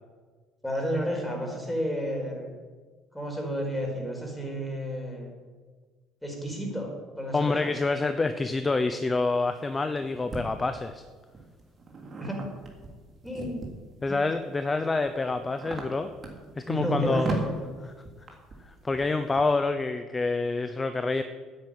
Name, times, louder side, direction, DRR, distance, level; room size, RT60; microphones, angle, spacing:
voice 1, 0.6-2.6 3.1-5.3 6.2-6.9 7.2-7.7 12.2-12.4 13.2-13.6 16.7-17.6, equal, ahead, 0 dB, 4.8 m, -31 dB
voice 2, 7.3-11.0 14.0-16.1 16.6-17.3 18.7-21.2, left 3 dB, 20° left, 9 dB, 0.8 m, -27 dB
sound 1, 9.2-10.4 11.1-13.9 14.5-19.5, right 3 dB, 40° right, 3.4 m, -38 dB
9.9 x 8.9 x 8.8 m, 1.4 s
supercardioid pair, 90°, 0 cm